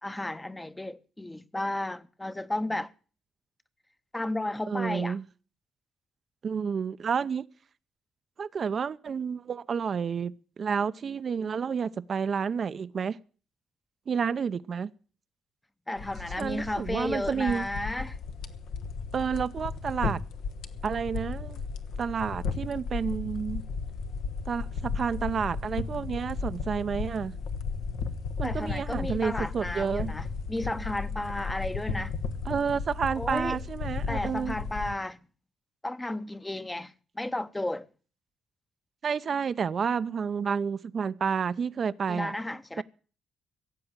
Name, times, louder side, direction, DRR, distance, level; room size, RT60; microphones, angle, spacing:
voice 1, 0.0-2.9 4.1-5.2 15.9-18.2 28.4-32.2 33.2-33.6 34.1-35.2 35.8-37.9 42.1-42.8, left 1 dB, 10° left, 0.9 m, -33 dB
voice 2, 4.7-5.2 6.4-7.5 8.4-10.3 10.6-13.2 14.1-14.9 16.4-17.7 19.1-20.2 20.8-21.6 22.0-23.6 24.5-27.4 28.4-30.1 32.5-34.6 39.0-42.3 42.8-42.9, right 6 dB, 50° right, 0.7 m, -30 dB
sound 1, 16.0-35.0, left 5 dB, 80° left, 1.3 m, -35 dB
16.5 x 7.7 x 8.9 m
cardioid pair, 90°, 0 cm